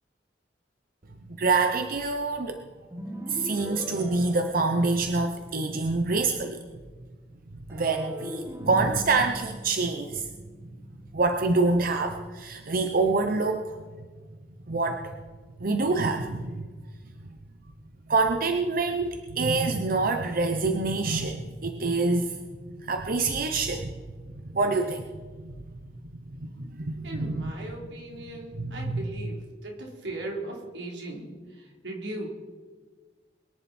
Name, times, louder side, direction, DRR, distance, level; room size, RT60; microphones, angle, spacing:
voice 1, 1.3-2.6 3.3-6.6 7.7-10.3 11.1-13.8 14.7-15.2 15.6-16.7 17.3-17.4 18.1-22.4 22.7-23.9 24.4-25.6 26.3-27.5 28.6-29.0, right 3 dB, 55° right, 5 dB, 0.9 m, -26 dB
sound 1, 2.9-5.3 7.7-11.0, equal, 15° right, 1.5 m, -40 dB
voice 2, 27.0-32.3, right 1 dB, 90° right, -1 dB, 3.6 m, -38 dB
22.5 x 10.5 x 4.4 m, 1.4 s
head